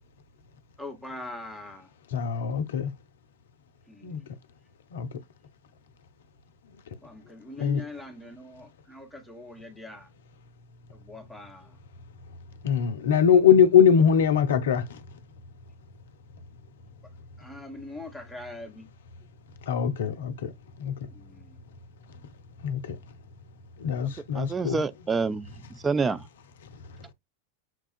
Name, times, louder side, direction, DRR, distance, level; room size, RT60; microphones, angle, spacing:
voice 1, 0.8-1.9 3.9-4.4 7.0-10.1 10.9-11.8 17.0-17.1 17.4-18.9 21.1-21.6, left 2 dB, ahead, 1.0 m, -43 dB
voice 2, 2.1-2.9 4.0-4.2 4.9-5.1 7.6-7.8 12.6-15.0 19.7-20.5 20.8-21.0 22.6-23.0 23.8-24.8, left 8 dB, 60° left, 0.5 m, -22 dB
voice 3, 24.0-25.5 25.8-26.2, right 4 dB, 15° right, 0.4 m, -27 dB
5.8 x 2.3 x 2.4 m
figure-of-eight pair, 90°, 0 cm